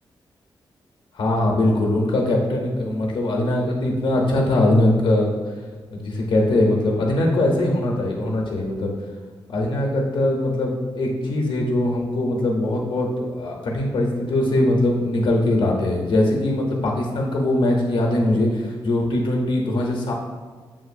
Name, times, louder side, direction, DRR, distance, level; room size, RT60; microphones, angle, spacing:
voice 1, 1.1-5.3 5.9-8.9 9.5-20.1, left 1 dB, 70° left, 0 dB, 0.6 m, -21 dB
7.2 x 2.5 x 2.5 m, 1.5 s
wide cardioid pair, 155°, 9 cm